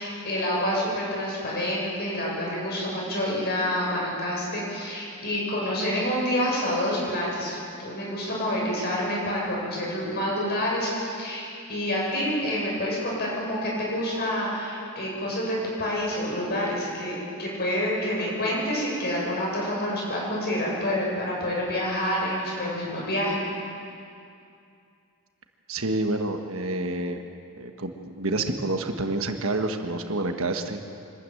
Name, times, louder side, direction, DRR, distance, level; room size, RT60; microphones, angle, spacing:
voice 1, 0.0-23.4, left 1 dB, 45° left, -4 dB, 7.1 m, -28 dB
voice 2, 25.7-27.2 27.6-30.9, right 2 dB, 65° right, 5 dB, 1.4 m, -28 dB
24.5 x 13.0 x 9.1 m, 2.5 s
head